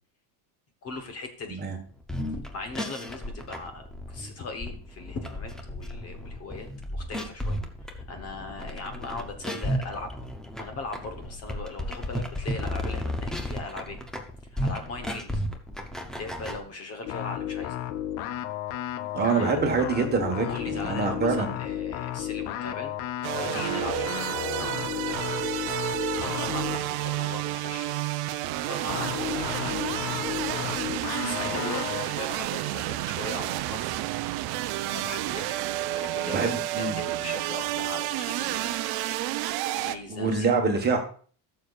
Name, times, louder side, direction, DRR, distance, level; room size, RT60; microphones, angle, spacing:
voice 1, 0.8-1.6 2.5-10.1 10.6-14.0 14.4-15.4 16.1-17.8 19.3-19.6 20.4-25.4 26.1-28.1 28.5-33.9 34.5-38.8 39.7-40.9, left 3 dB, 30° left, 6 dB, 1.0 m, -39 dB
sound 1, 2.0-16.6, equal, ahead, 0.4 m, -34 dB
sound 2, 17.0-26.9 28.9-32.1, left 12 dB, 55° left, 0.5 m, -33 dB
voice 2, 19.1-21.5 36.3-37.0 40.1-41.0, right 4 dB, 20° right, 3 dB, 1.3 m, -25 dB
sound 3, 23.2-40.0, right 15 dB, 55° right, 0.6 m, -30 dB
14.0 x 6.7 x 2.4 m, 0.43 s
cardioid pair, 160°, 46 cm